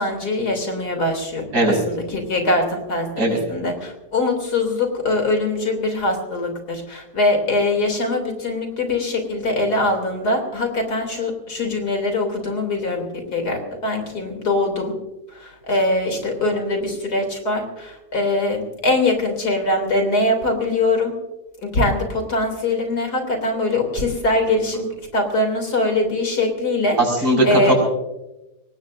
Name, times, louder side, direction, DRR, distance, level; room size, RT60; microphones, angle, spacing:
voice 1, 0.0-14.9 15.3-21.1 21.6-24.8 25.1-27.0 27.4-27.7, left 2 dB, 65° left, 4 dB, 3.6 m, -22 dB
voice 2, 27.2-27.7, right 1 dB, 70° right, 0 dB, 6.0 m, -17 dB
24.5 x 19.0 x 2.6 m, 0.99 s
omnidirectional pair, 1.8 m